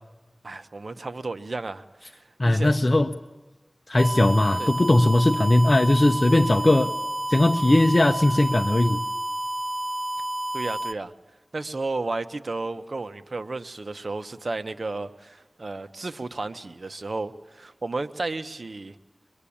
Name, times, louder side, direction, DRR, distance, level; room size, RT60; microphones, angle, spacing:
voice 1, 0.4-2.7 4.6-4.7 10.5-11.1 11.5-19.0, right 3 dB, 70° right, 10 dB, 1.1 m, -33 dB
voice 2, 2.4-3.1 3.9-6.9 7.3-9.0, left 1 dB, 45° left, 5 dB, 0.9 m, -19 dB
sound 1, 4.0-10.9, right 1 dB, 40° right, 0.9 m, -30 dB
24.0 x 22.5 x 8.7 m, 1.1 s
wide cardioid pair, 50°, 0 cm